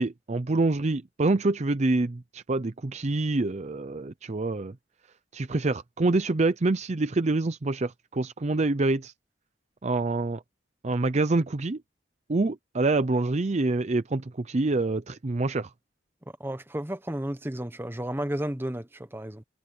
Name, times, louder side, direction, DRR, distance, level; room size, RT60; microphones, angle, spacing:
voice 1, 0.0-4.7 5.3-9.1 9.8-10.4 10.8-11.8 12.3-15.7, right 2 dB, 40° right, 0.6 m, -26 dB
voice 2, 16.4-19.4, right 1 dB, 10° right, 1.1 m, -32 dB
head